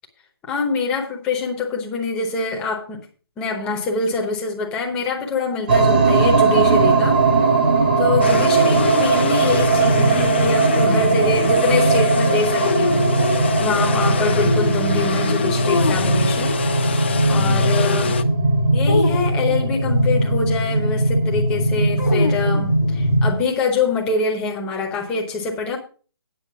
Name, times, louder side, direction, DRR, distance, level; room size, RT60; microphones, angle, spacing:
voice 1, 0.4-3.0 3.4-7.2 8.0-16.6 17.3-18.2 18.7-25.8, left 4 dB, 5° left, 1 dB, 0.9 m, -24 dB
sound 1, 5.7-23.3, right 3 dB, 20° right, 0.9 m, -18 dB
sound 2, 8.2-10.1 12.6-13.8 15.6-16.4 18.8-19.9 22.0-23.2, left 5 dB, 45° left, 0.9 m, -29 dB
sound 3, 8.2-18.2, left 5 dB, 25° left, 0.5 m, -25 dB
9.4 x 6.3 x 6.0 m, 0.38 s
hypercardioid pair, 175°, 13 cm